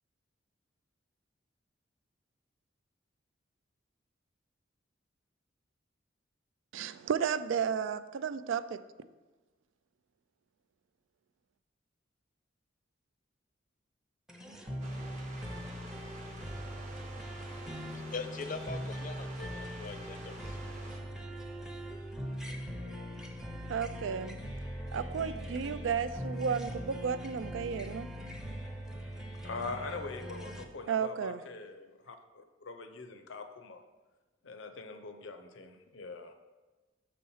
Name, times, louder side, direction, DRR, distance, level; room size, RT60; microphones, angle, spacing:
voice 1, 6.7-8.8 23.7-24.4 24.9-28.1 30.9-31.4, right 7 dB, 90° right, 14 dB, 0.4 m, -33 dB
sound 1, 14.3-30.6, equal, 5° right, 0.5 m, -41 dB
sound 2, 14.8-21.0, right 2 dB, 40° right, 0.9 m, -50 dB
voice 2, 17.9-20.6 21.2-21.4, left 4 dB, 45° left, 10 dB, 0.4 m, -42 dB
voice 3, 29.4-33.8 34.4-36.3, left 3 dB, 85° left, 7 dB, 0.7 m, -43 dB
6.3 x 4.3 x 5.5 m, 1.2 s
head